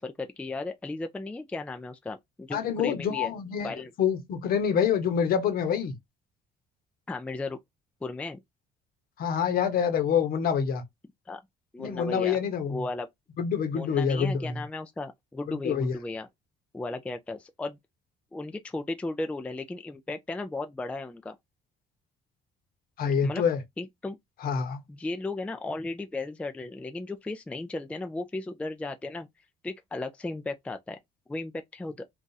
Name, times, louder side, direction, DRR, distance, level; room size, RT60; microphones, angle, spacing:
voice 1, 0.0-3.3 3.6-3.9 7.1-7.6 8.0-8.4 11.3-11.4 11.7-12.4 12.7-13.1 13.7-16.3 16.7-17.8 18.3-21.4 23.2-23.4 23.8-24.2 24.9-29.3 29.6-31.0 31.3-32.0, left 2 dB, 5° left, 0.3 m, -35 dB
voice 2, 2.5-3.7 4.0-6.0 9.2-10.8 11.8-12.8 13.4-14.6 15.5-15.9 23.0-23.6 24.4-24.8, left 7 dB, 60° left, 0.9 m, -26 dB
2.7 x 2.3 x 3.9 m
cardioid pair, 110°, 17 cm